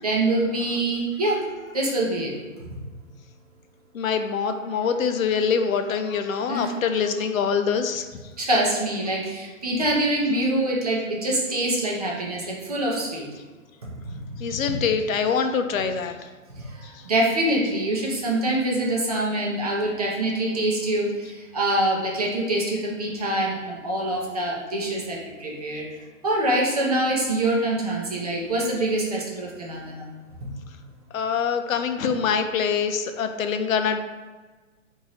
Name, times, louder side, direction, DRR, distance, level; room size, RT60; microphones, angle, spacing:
voice 1, 0.0-1.4 1.7-2.3 6.5-6.7 8.4-13.2 13.8-13.9 14.3-14.4 14.7-14.8 16.6-25.9 26.2-30.0, right 1 dB, 30° right, -3 dB, 0.6 m, -25 dB
voice 2, 3.9-8.2 14.4-16.1 31.1-34.0, left 6 dB, 80° left, 7 dB, 0.6 m, -24 dB
5.4 x 2.7 x 3.0 m, 1.3 s
hypercardioid pair, 170°, 40 cm